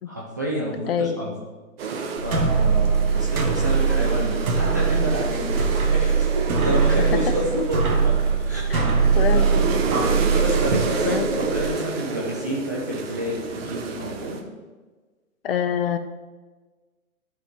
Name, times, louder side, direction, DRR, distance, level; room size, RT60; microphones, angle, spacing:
voice 1, 0.1-1.3 2.2-8.2 8.4-8.6 9.3-9.7 10.3-14.4, equal, 15° right, -5 dB, 0.4 m, -29 dB
voice 2, 0.9-1.4 7.0-7.3 8.7-8.9 9.1-9.8 11.0-11.3 15.4-16.0, left 8 dB, 45° left, 10 dB, 0.7 m, -26 dB
sound 1, 1.8-14.4, right 4 dB, 45° right, 1.3 m, -30 dB
sound 2, 2.2-11.7, right 5 dB, 80° right, 1.8 m, -22 dB
13.0 x 5.6 x 3.6 m, 1.3 s
hypercardioid pair, 145°, 42 cm